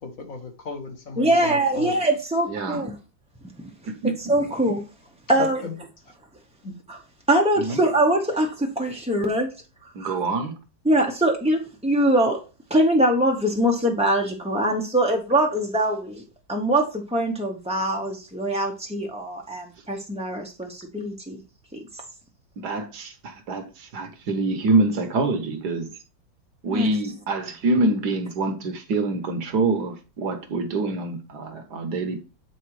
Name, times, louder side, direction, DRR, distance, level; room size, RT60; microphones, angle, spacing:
voice 1, 0.0-1.9 5.4-5.7 6.6-6.8 7.8-7.9, left 4 dB, 50° left, 1.4 m, -34 dB
voice 2, 1.2-3.0 4.0-4.8 5.3-5.6 6.9-7.0 7.3-9.5 10.0-10.2 10.8-12.4 12.7-21.4 21.7-21.8 26.7-27.1, right 1 dB, 5° right, 0.4 m, -23 dB
voice 3, 2.5-2.8 4.0-4.1 7.7-7.8 9.9-10.5 22.6-25.9 26.6-32.2, right 2 dB, 60° right, 1.5 m, -25 dB
8.8 x 4.1 x 4.8 m
omnidirectional pair, 2.1 m